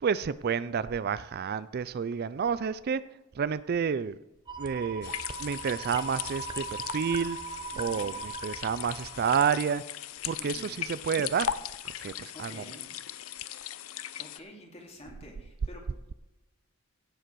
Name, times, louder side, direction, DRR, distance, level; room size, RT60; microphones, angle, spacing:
voice 1, 0.0-3.0 3.3-4.2 4.6-5.1 5.4-7.4 7.8-9.8 10.2-11.5 12.0-12.6, right 6 dB, 45° right, 16 dB, 0.4 m, -30 dB
sound 1, 4.5-9.5, right 4 dB, 20° right, 0.7 m, -40 dB
sound 2, 5.0-14.4, left 10 dB, 75° left, 0.6 m, -38 dB
voice 2, 7.7-8.2 10.4-10.8 12.3-12.9 13.7-16.1, left 1 dB, 30° left, 0 dB, 2.7 m, -50 dB
16.5 x 7.7 x 4.6 m, 0.99 s
head